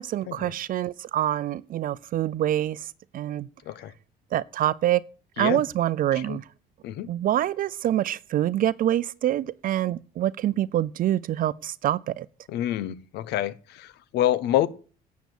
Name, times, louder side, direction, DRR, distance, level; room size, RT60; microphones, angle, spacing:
voice 1, 0.0-2.8 3.1-3.5 4.3-5.0 5.4-6.4 7.1-12.3, right 12 dB, 55° right, 0.6 m, -25 dB
voice 2, 12.5-14.7, left 12 dB, 85° left, 0.9 m, -27 dB
11.0 x 8.3 x 8.3 m
cardioid pair, 110°, 17 cm